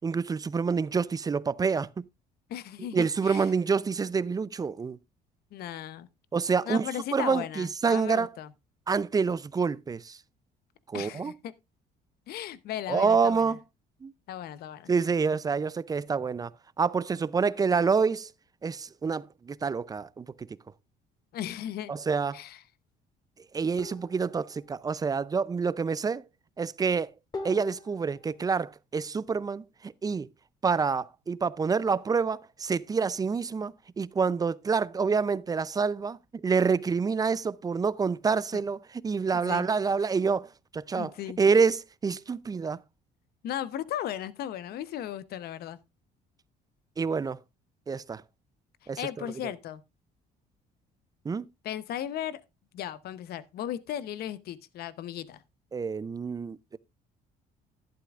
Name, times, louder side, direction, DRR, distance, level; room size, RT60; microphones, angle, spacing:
voice 1, 0.0-2.0 2.9-5.0 6.3-8.3 8.9-10.2 10.9-11.3 12.9-13.6 14.0-14.1 14.9-16.5 16.8-18.3 18.6-20.5 21.9-22.4 23.5-26.2 26.6-27.1 27.4-30.3 30.6-41.1 41.4-42.8 47.0-47.4 47.9-48.2 48.9-49.0 51.2-51.4 55.7-56.8, right 5 dB, 20° right, 0.4 m, -27 dB
voice 2, 2.5-3.5 5.5-6.1 6.7-8.5 10.9-11.5 12.3-13.5 14.3-14.9 21.3-21.9 22.3-22.6 38.5-38.6 39.3-39.7 41.0-41.4 43.4-45.8 49.0-49.8 51.6-52.4 52.7-55.4, left 11 dB, 70° left, 0.8 m, -36 dB
sound 1, 23.8-24.3 27.3-28.2, left 3 dB, 25° left, 2.2 m, -40 dB
11.5 x 11.5 x 2.4 m
cardioid pair, 110°, 17 cm